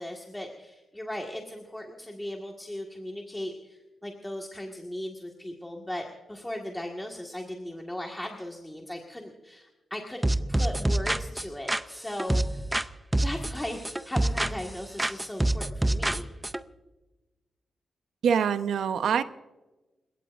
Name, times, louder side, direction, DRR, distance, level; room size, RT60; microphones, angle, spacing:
voice 1, 0.0-12.6 13.2-13.8 14.0-16.3, left 1 dB, 10° left, 0 dB, 1.7 m, -37 dB
sound 1, 10.2-12.9 13.1-14.7 15.0-16.6, right 1 dB, 10° right, 0.5 m, -27 dB
voice 2, 18.2-19.2, right 7 dB, 85° right, 10 dB, 0.9 m, -24 dB
30.0 x 17.0 x 2.6 m, 1.1 s
wide cardioid pair, 170°, 0 cm